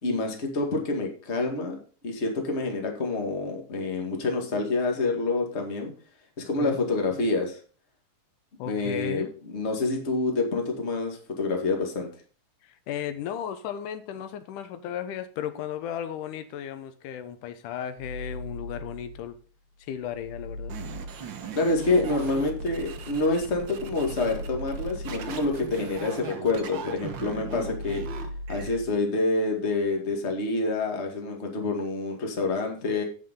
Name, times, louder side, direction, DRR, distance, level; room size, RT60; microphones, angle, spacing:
voice 1, 0.0-1.7 2.0-5.9 6.4-7.6 8.7-9.3 9.5-12.1 21.6-28.0 28.5-33.0, left 3 dB, 25° left, 1 dB, 1.9 m, -27 dB
voice 2, 8.6-9.3 12.6-19.4 19.8-20.7, left 9 dB, 85° left, 11 dB, 2.4 m, -35 dB
sound 1, 18.0-19.4 19.8-26.3 26.7-28.9, left 1 dB, 60° left, 3.9 m, -40 dB
sound 2, 20.7-28.7, right 6 dB, 60° right, 1.2 m, -39 dB
16.5 x 5.6 x 3.7 m, 0.40 s
omnidirectional pair, 3.6 m